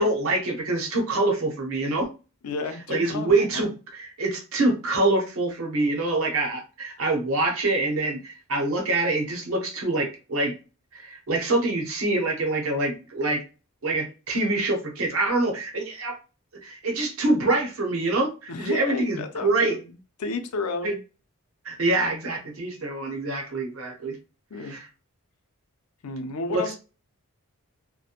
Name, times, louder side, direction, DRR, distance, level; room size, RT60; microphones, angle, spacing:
voice 1, 0.0-2.1 2.9-10.5 10.9-13.4 13.8-16.2 16.6-19.8 20.8-20.9 21.6-24.2 24.6-24.9 26.5-26.6, right 2 dB, 65° right, 2 dB, 0.8 m, -25 dB
voice 2, 2.4-3.7 18.5-19.9 20.2-21.0 24.5-24.8 26.0-26.8, left 3 dB, 90° left, 7 dB, 0.5 m, -32 dB
2.4 x 2.1 x 2.8 m, 0.33 s
head